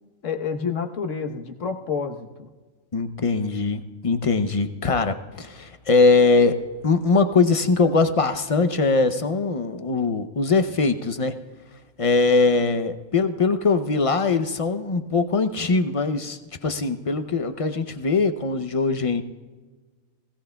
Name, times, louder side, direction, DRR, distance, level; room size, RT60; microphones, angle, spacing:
voice 1, 0.2-2.5, left 6 dB, 65° left, 5 dB, 1.4 m, -29 dB
voice 2, 2.9-11.4 12.0-19.2, left 3 dB, 45° left, 9 dB, 0.4 m, -21 dB
20.5 x 17.0 x 2.3 m, 1.3 s
omnidirectional pair, 1.4 m